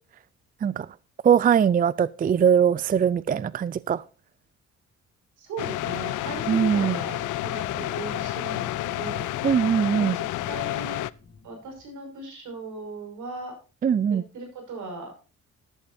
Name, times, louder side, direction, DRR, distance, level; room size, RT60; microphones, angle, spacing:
voice 1, 1.2-4.0 6.5-7.0 9.4-10.2 13.8-14.2, right 8 dB, 30° right, 0.4 m, -21 dB
voice 2, 5.4-9.3 10.0-11.0 11.4-13.6 14.1-15.1, right 2 dB, 80° right, 5.7 m, -38 dB
sound 1, 5.6-11.1, left 16 dB, 80° left, 0.5 m, -30 dB
sound 2, 5.8-11.8, left 4 dB, 35° left, 2.4 m, -43 dB
13.5 x 12.0 x 2.7 m
cardioid pair, 90°, 30 cm